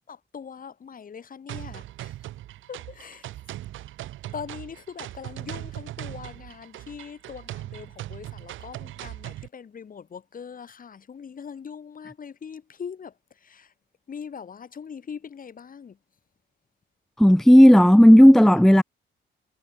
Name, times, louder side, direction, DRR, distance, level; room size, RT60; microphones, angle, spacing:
voice 1, 0.1-2.1 2.7-3.3 4.3-13.7 14.1-16.0 18.4-18.5, left 7 dB, 45° left, 2.8 m, -41 dB
sound 1, 1.5-9.5, right 14 dB, 80° right, 1.1 m, -39 dB
voice 2, 17.2-18.8, equal, ahead, 0.5 m, -12 dB
cardioid pair, 90°, 20 cm